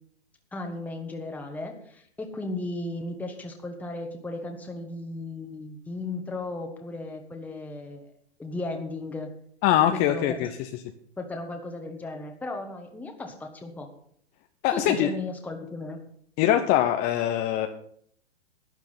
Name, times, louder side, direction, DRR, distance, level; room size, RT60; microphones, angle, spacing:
voice 1, 0.5-8.1 8.4-9.3 9.9-10.5 11.2-13.9 14.7-16.0, left 2 dB, 5° left, 3 dB, 1.3 m, -35 dB
voice 2, 9.6-10.5 14.6-15.1 16.4-17.7, left 12 dB, 30° left, 7 dB, 0.7 m, -22 dB
12.0 x 9.1 x 5.8 m, 0.63 s
hypercardioid pair, 130°, 33 cm